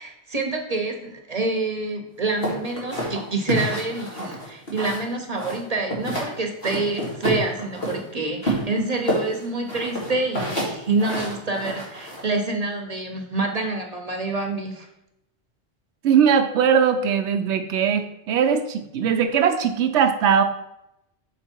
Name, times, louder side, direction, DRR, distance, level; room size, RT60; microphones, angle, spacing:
voice 1, 0.0-14.9, right 3 dB, 40° right, 3 dB, 0.9 m, -27 dB
sound 1, 2.4-5.1 5.4-6.3 6.6-8.0 8.4-12.2, equal, 60° left, 2.5 m, -28 dB
voice 2, 16.0-20.4, right 7 dB, 90° right, 5 dB, 0.9 m, -20 dB
6.7 x 4.8 x 4.5 m, 0.83 s
omnidirectional pair, 1.1 m